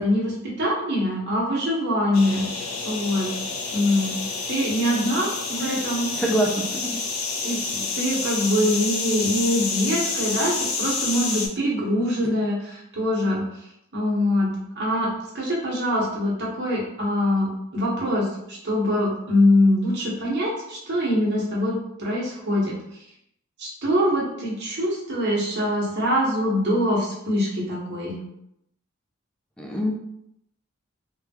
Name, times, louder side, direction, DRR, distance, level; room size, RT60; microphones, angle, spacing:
voice 1, 0.0-2.4 2.8-3.3 3.7-4.1 4.5-6.1 7.4-10.5 10.8-13.4 13.9-14.5 14.8-15.1 15.3-22.7 23.6-28.2, left 1 dB, 50° right, -4 dB, 1.0 m, -23 dB
sound 1, 2.1-11.5, left 4 dB, 85° left, 0.5 m, -29 dB
voice 2, 6.2-7.0 29.6-29.9, right 1 dB, 5° left, 0 dB, 0.4 m, -25 dB
3.4 x 2.3 x 2.9 m, 0.79 s
head